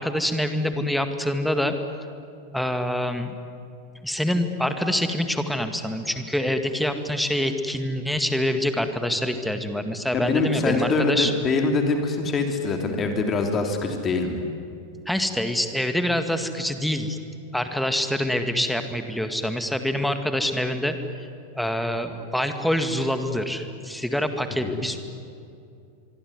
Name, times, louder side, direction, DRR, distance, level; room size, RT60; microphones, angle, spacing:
voice 1, 0.0-1.7 2.5-3.4 4.0-11.3 15.1-17.2 17.5-21.0 21.5-25.0, left 1 dB, ahead, 8 dB, 2.0 m, -25 dB
voice 2, 10.1-14.4 24.6-24.8, left 3 dB, 25° left, 4 dB, 3.3 m, -24 dB
25.0 x 23.5 x 9.7 m, 2.6 s
figure-of-eight pair, 90°, 0 cm